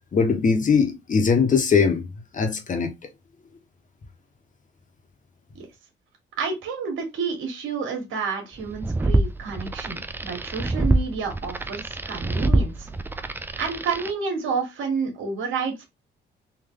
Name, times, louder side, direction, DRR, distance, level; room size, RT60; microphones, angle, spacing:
voice 1, 0.1-2.1 2.3-2.9, left 5 dB, 40° left, 1.1 m, -20 dB
voice 2, 6.4-12.9 13.6-15.9, right 5 dB, 80° right, 1.5 m, -29 dB
sound 1, 8.6-14.1, right 2 dB, 10° right, 0.4 m, -25 dB
3.5 x 2.7 x 3.7 m
cardioid pair, 90°, 20 cm